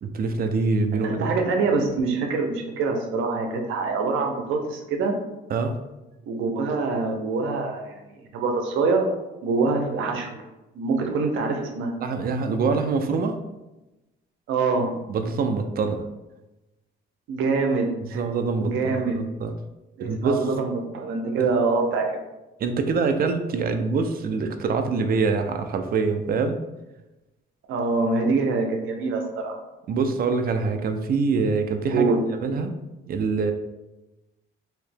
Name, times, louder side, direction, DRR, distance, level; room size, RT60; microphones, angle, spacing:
voice 1, 0.0-1.3 5.5-5.8 12.0-13.4 15.1-16.0 18.0-19.5 20.0-20.4 21.4-21.5 22.6-26.6 29.9-32.1 32.4-32.7 33.1-33.5, right 4 dB, 50° right, 6 dB, 0.5 m, -25 dB
voice 2, 1.0-5.1 6.3-9.1 9.4-10.4 10.7-11.9 14.5-15.0 17.3-18.2 18.6-19.2 20.0-22.0 27.7-29.6 31.9-32.6, right 4 dB, 85° right, 3 dB, 0.7 m, -25 dB
3.1 x 2.8 x 3.4 m, 1.0 s
cardioid pair, 90°, 20 cm